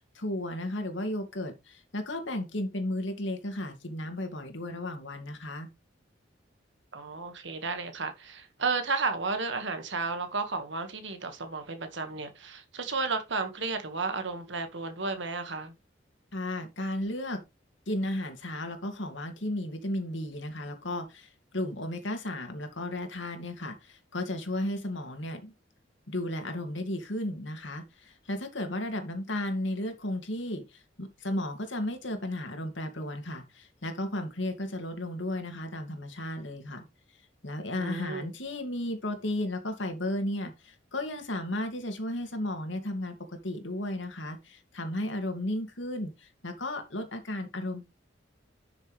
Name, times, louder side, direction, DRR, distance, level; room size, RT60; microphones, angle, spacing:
voice 1, 0.1-5.7 16.3-17.4 17.9-25.5 26.1-36.8 37.4-47.8, left 1 dB, 70° left, 2.4 m, -34 dB
voice 2, 6.9-15.7 37.8-38.3, right 4 dB, 70° right, 1.7 m, -33 dB
11.0 x 6.5 x 3.3 m
head